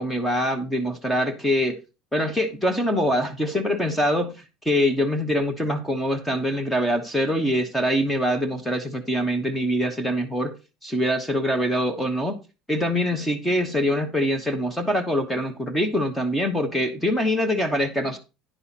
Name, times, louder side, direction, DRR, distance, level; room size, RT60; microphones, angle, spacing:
voice 1, 0.0-1.8 2.1-10.5 10.8-12.4 12.7-18.2, equal, 5° left, 1.0 m, -24 dB
10.0 x 5.6 x 4.1 m
cardioid pair, 130°, 0 cm